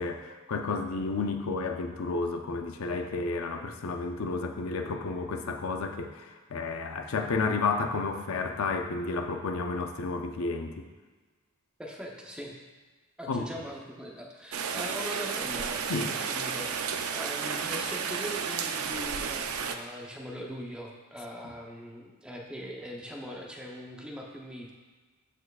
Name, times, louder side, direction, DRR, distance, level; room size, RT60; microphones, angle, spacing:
voice 1, 0.0-10.9 13.3-13.5 15.9-16.1, left 3 dB, 65° left, 5 dB, 0.5 m, -31 dB
voice 2, 11.8-12.6 13.2-24.7, equal, 5° right, -2 dB, 0.7 m, -41 dB
Rain, 14.5-19.8, right 6 dB, 65° right, 0.5 m, -32 dB
13.0 x 4.5 x 2.4 m, 1.4 s
head